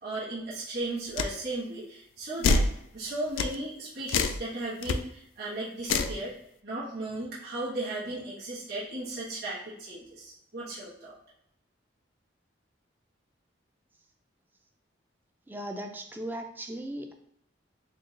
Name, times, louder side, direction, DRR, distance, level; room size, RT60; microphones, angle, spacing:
voice 1, 0.0-2.7 2.9-6.3 6.6-11.1, right 2 dB, 50° right, -9 dB, 1.4 m, -36 dB
sound 1, 1.2-1.3 2.4-2.7 3.4-3.5 4.1-4.4 4.8-5.0 5.9-6.2, left 4 dB, 85° left, 0.3 m, -25 dB
voice 2, 15.5-17.1, right 1 dB, 10° right, 4 dB, 0.3 m, -37 dB
4.2 x 2.4 x 3.2 m, 0.75 s
head